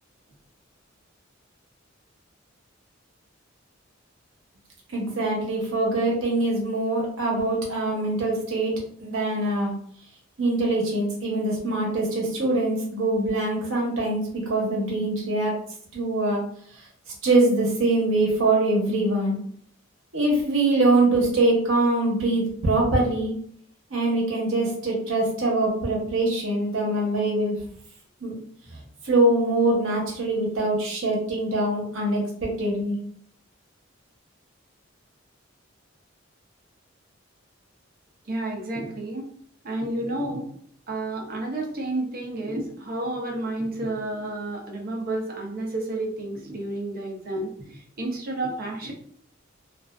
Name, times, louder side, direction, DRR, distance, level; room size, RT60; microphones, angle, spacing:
voice 1, 4.9-8.7 9.0-9.7 10.4-15.5 15.9-16.4 17.2-19.4 20.1-23.3 23.9-27.6 28.2-28.3 28.7-28.8 29.0-33.0, right 2 dB, 75° right, -2 dB, 0.8 m, -23 dB
voice 2, 38.2-39.3 39.6-40.5 40.9-48.9, right 2 dB, 50° right, 0 dB, 0.6 m, -31 dB
2.3 x 2.3 x 2.3 m, 0.63 s
head